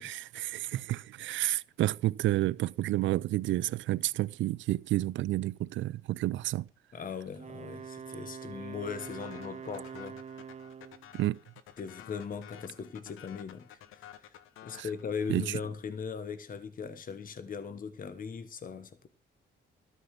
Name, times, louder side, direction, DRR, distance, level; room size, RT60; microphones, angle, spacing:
voice 1, 0.0-6.7 11.1-11.4 14.7-14.9 15.3-15.6, right 15 dB, 75° right, 0.5 m, -30 dB
voice 2, 6.9-10.2 11.8-14.3 14.6-19.1, left 6 dB, 45° left, 1.2 m, -39 dB
Wind instrument woodwind instrument, 7.3-11.1, right 7 dB, 35° right, 0.6 m, -44 dB
sound 1, 9.0-15.7, left 10 dB, 85° left, 1.0 m, -52 dB
13.0 x 5.5 x 7.4 m
cardioid pair, 90°, 20 cm